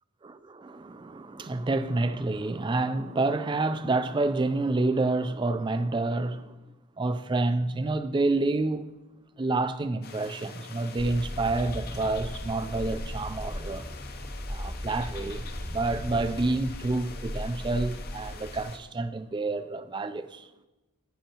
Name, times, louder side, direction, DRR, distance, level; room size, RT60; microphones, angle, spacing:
voice 1, 0.2-6.6 7.0-8.9 9.4-13.9 14.5-20.5, right 2 dB, 20° right, 0.3 m, -28 dB
sound 1, 10.0-18.8, left 5 dB, 45° left, 0.7 m, -46 dB
sound 2, 11.0-18.6, equal, ahead, 0.8 m, -37 dB
10.0 x 8.8 x 2.9 m
head